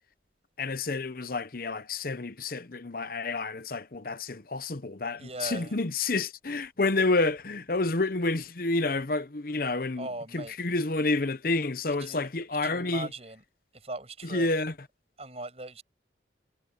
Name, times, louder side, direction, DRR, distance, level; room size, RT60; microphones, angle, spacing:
voice 1, 0.6-10.1 10.3-13.1 14.2-14.7, left 3 dB, 50° left, 0.9 m, -29 dB
voice 2, 5.2-5.8 10.0-10.6 12.0-12.3 12.6-13.4 13.7-14.5 15.2-15.8, right 2 dB, 35° right, 6.7 m, -39 dB
head